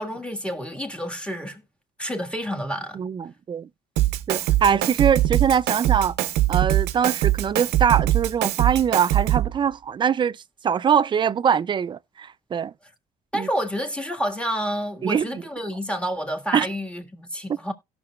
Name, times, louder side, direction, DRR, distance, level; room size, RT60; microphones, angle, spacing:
voice 1, 0.0-1.6 2.0-3.0 13.3-17.7, equal, 5° left, 1.7 m, -29 dB
voice 2, 2.9-3.7 4.3-6.1 6.5-10.4 10.6-12.7 13.3-13.5 15.0-15.4 16.5-16.7, right 7 dB, 30° right, 0.4 m, -22 dB
Drum kit, 4.0-9.6, right 14 dB, 80° right, 0.7 m, -22 dB
16.5 x 6.0 x 2.3 m
cardioid pair, 110°, 17 cm